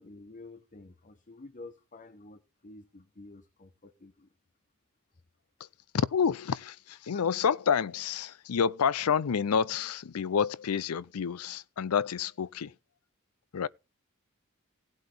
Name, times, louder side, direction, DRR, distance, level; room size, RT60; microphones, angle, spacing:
voice 1, 0.0-4.3 7.1-7.2, left 2 dB, 35° left, 0.9 m, -50 dB
voice 2, 5.9-12.7 13.5-13.7, left 6 dB, 90° left, 0.5 m, -29 dB
17.0 x 7.9 x 3.4 m
head